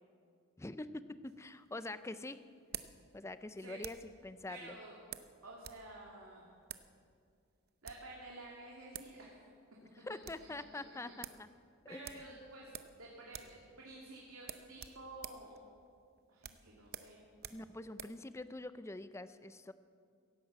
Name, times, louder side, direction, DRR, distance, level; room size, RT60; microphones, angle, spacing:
voice 1, 0.6-2.4 3.1-4.0 4.2-4.7 10.0-11.5 11.9-12.3 17.5-19.7, left 2 dB, 15° left, 13 dB, 0.5 m, -45 dB
sound 1, 1.3-4.2 5.1-5.9 6.1-6.2 6.6-6.9 7.6-8.1 8.7-8.8 8.9-9.2 9.5-9.6 9.9-10.5 10.8-10.9 11.2-11.4 12.0-13.0 13.3-13.6 13.9-14.0 14.4-18.2, right 10 dB, 50° right, 0.7 m, -49 dB
voice 2, 4.5-5.0 5.4-6.5 7.8-9.5 11.0-11.1 11.9-15.5 16.3-17.2, right 2 dB, 80° right, -3 dB, 2.4 m, -51 dB
16.5 x 11.0 x 7.6 m, 2.3 s
head